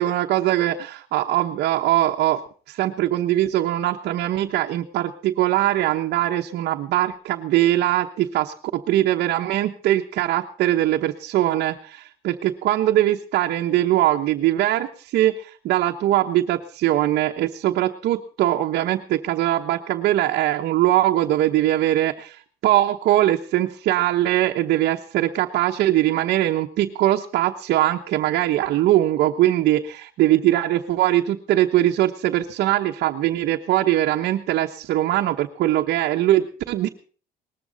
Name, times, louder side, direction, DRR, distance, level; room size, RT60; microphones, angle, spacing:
voice 1, 0.0-2.4 2.7-36.9, right 14 dB, 75° right, 1 dB, 1.1 m, -21 dB
19.5 x 14.0 x 4.0 m, 0.40 s
cardioid pair, 110°, 17 cm